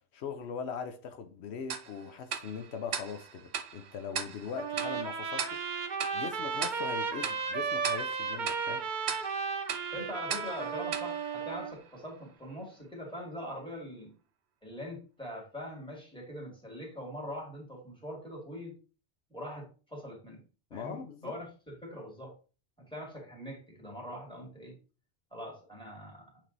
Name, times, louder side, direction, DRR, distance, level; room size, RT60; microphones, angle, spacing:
voice 1, 0.1-8.9 20.7-21.3, left 6 dB, 85° left, 1.0 m, -41 dB
Tick-tock, 1.7-12.1, right 7 dB, 80° right, 0.9 m, -40 dB
Trumpet, 4.6-11.7, right 5 dB, 50° right, 0.8 m, -34 dB
voice 2, 9.9-14.1 14.6-18.8 19.3-20.4 20.7-22.3 22.8-24.8 25.3-26.3, equal, 5° left, 2.3 m, -42 dB
7.5 x 3.6 x 3.9 m
omnidirectional pair, 1.1 m